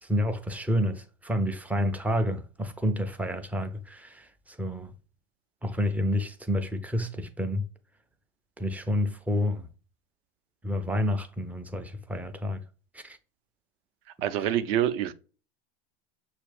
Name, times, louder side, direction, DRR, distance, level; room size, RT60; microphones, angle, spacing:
voice 1, 0.0-4.9 5.6-7.7 8.6-9.7 10.6-12.6 12.9-13.2 14.4-14.5, left 1 dB, 5° right, 0.3 m, -29 dB
voice 2, 14.2-15.1, right 11 dB, 60° right, 0.6 m, -26 dB
6.1 x 2.4 x 3.2 m
hypercardioid pair, 90°, 33 cm